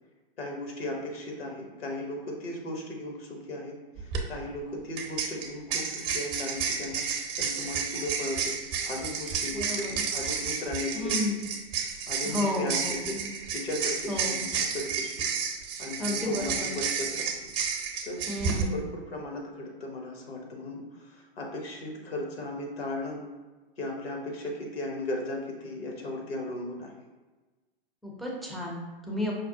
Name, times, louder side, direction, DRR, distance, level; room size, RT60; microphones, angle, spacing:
voice 1, 0.4-7.0 7.4-8.6 8.8-11.4 12.1-13.2 13.5-15.3 15.8-17.5 18.0-18.3 18.6-23.3 23.8-26.9, left 1 dB, 80° left, 0 dB, 0.9 m, -36 dB
sound 1, 4.0-4.2 5.0-18.6, right 6 dB, 40° right, 0.6 m, -31 dB
voice 2, 9.5-10.0 10.9-11.4 12.2-13.3 14.1-14.5 16.0-16.7 18.3-18.8 28.0-29.3, left 1 dB, ahead, -3 dB, 0.4 m, -32 dB
5.1 x 2.0 x 2.7 m, 1.2 s
hypercardioid pair, 105°, 30 cm